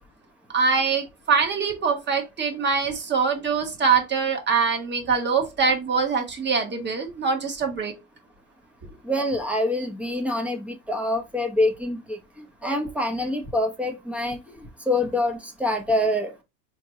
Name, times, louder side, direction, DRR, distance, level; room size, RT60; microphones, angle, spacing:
voice 1, 0.5-7.9 12.6-12.7, right 5 dB, 25° right, 1.3 m, -23 dB
voice 2, 9.0-12.2 12.6-14.4 14.9-16.4, left 1 dB, 5° right, 0.9 m, -25 dB
4.3 x 3.0 x 2.9 m
supercardioid pair, 100°, 44 cm